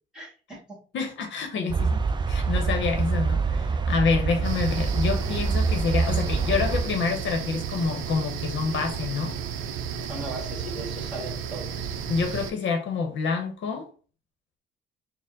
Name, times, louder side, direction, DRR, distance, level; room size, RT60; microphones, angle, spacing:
voice 1, 0.1-0.8 10.1-11.9, right 1 dB, 5° right, 1.9 m, -38 dB
voice 2, 0.9-9.4 12.1-13.9, left 5 dB, 70° left, 0.8 m, -27 dB
sound 1, 1.7-6.8, right 4 dB, 25° right, 0.4 m, -25 dB
sound 2, 4.4-12.5, right 7 dB, 85° right, 0.5 m, -33 dB
4.3 x 2.1 x 3.7 m
cardioid pair, 90°, 20 cm